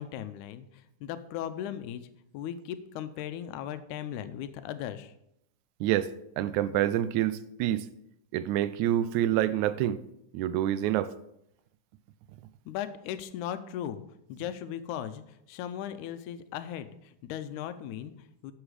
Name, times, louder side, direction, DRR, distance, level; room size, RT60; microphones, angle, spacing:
voice 1, 0.0-2.1 2.3-5.1 12.7-14.0 14.3-18.5, left 10 dB, 80° left, 2.0 m, -37 dB
voice 2, 5.8-6.1 6.4-7.9 8.3-10.0 10.3-11.1, right 12 dB, 80° right, 1.9 m, -27 dB
11.0 x 7.1 x 4.9 m
omnidirectional pair, 3.6 m